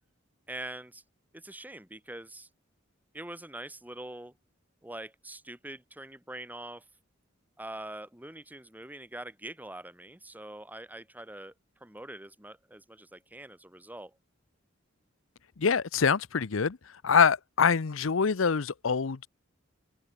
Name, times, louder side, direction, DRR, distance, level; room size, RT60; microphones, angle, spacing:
voice 1, 0.5-1.0 1.3-2.5 3.1-4.3 4.8-6.8 7.6-11.5 11.8-14.2, right 1 dB, 10° right, 2.2 m, -43 dB
voice 2, 15.6-16.8 17.0-19.3, left 6 dB, 75° left, 0.7 m, -25 dB
head